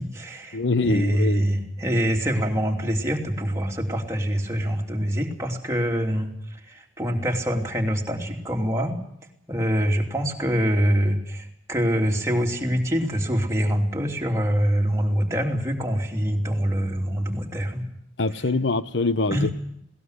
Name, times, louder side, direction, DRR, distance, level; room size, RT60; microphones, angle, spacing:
voice 1, 0.0-9.0 9.5-17.9 19.3-19.5, equal, 15° right, 0 dB, 3.0 m, -25 dB
voice 2, 0.5-1.4 18.2-19.5, left 3 dB, 65° left, 14 dB, 0.8 m, -24 dB
20.5 x 18.5 x 8.2 m, 0.73 s
head